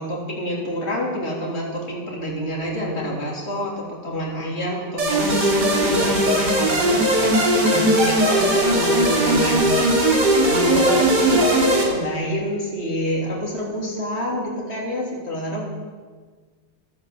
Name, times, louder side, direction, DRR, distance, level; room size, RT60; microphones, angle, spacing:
voice 1, 0.0-9.9 10.4-15.7, equal, 40° left, -3 dB, 3.8 m, -27 dB
sound 1, 5.0-11.8, right 1 dB, 75° right, 3.4 m, -18 dB
13.5 x 12.5 x 7.9 m, 1.5 s
omnidirectional pair, 1.8 m